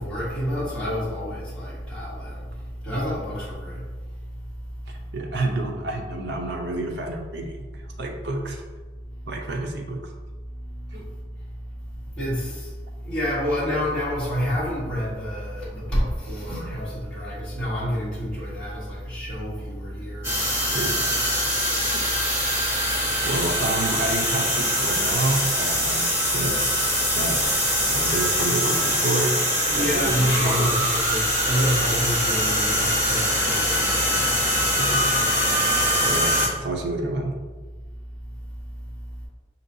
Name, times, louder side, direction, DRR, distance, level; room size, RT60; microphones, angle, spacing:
voice 1, 0.0-3.8 4.2-4.3 10.6-20.7 22.9-23.0 29.7-34.2 34.7-34.8 38.7-38.9, equal, 5° left, -12 dB, 1.5 m, -29 dB
voice 2, 4.9-7.7 8.0-8.6 9.3-10.0 10.9-11.0 16.5-16.7 20.7-21.1 21.9-22.0 23.2-26.1 26.3-26.6 27.1-27.4 27.8-29.4 29.8-30.9 34.8-35.2 35.5-37.3, right 2 dB, 70° right, 2 dB, 0.7 m, -29 dB
sound 1, 20.2-36.5, equal, 15° right, 1.3 m, -23 dB
6.2 x 2.8 x 2.7 m, 1.4 s
head